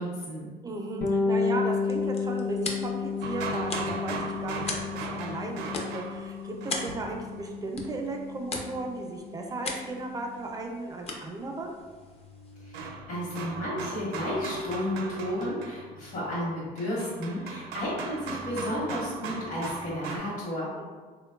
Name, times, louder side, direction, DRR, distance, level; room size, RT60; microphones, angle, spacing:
voice 1, 0.0-0.5 12.6-20.7, left 1 dB, 55° left, -7 dB, 1.0 m, -32 dB
voice 2, 0.6-11.7 20.7-20.9, right 2 dB, 20° right, 1 dB, 0.4 m, -36 dB
Bass guitar, 1.0-10.6, left 5 dB, 80° left, 0.7 m, -32 dB
sound 1, 1.6-12.8, left 3 dB, 35° left, 0.4 m, -41 dB
sound 2, 3.2-7.5 10.0-10.1 11.8-20.2, right 4 dB, 80° right, 0.4 m, -38 dB
3.3 x 2.2 x 2.2 m, 1.4 s
cardioid pair, 110°, 17 cm